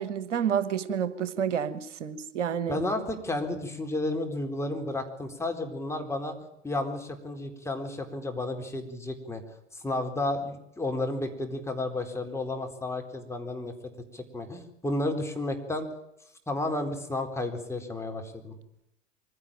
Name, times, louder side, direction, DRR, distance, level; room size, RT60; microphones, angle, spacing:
voice 1, 0.0-2.8, right 8 dB, 75° right, 14 dB, 1.5 m, -29 dB
voice 2, 2.7-6.4 6.6-9.4 9.7-13.7 14.1-15.9 16.5-18.6, left 2 dB, 5° left, 4 dB, 4.2 m, -32 dB
24.0 x 16.0 x 9.0 m, 0.81 s
hypercardioid pair, 90°, 36 cm